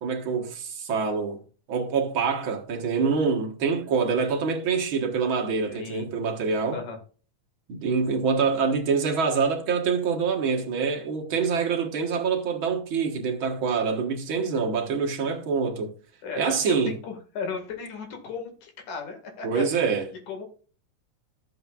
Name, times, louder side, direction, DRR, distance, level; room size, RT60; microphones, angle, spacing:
voice 1, 0.0-1.4 1.7-6.8 7.7-15.9 16.4-17.0 19.4-20.1, right 5 dB, 50° right, 1.8 m, -25 dB
voice 2, 5.7-6.1 6.7-7.0 16.2-20.0 20.3-20.4, left 5 dB, 75° left, 3.5 m, -36 dB
13.5 x 7.9 x 2.4 m
omnidirectional pair, 3.5 m